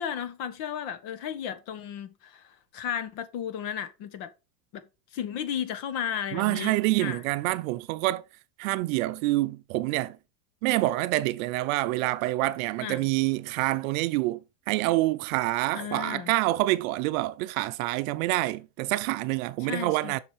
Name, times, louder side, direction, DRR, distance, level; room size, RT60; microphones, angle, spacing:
voice 1, 0.0-4.3 4.7-4.8 5.1-7.2 12.8-13.0 15.7-16.3 19.6-20.2, left 9 dB, 45° left, 1.3 m, -34 dB
voice 2, 6.3-8.2 8.6-10.2 10.6-20.2, right 18 dB, 55° right, 0.7 m, -27 dB
7.2 x 6.5 x 4.8 m
supercardioid pair, 145°, 49 cm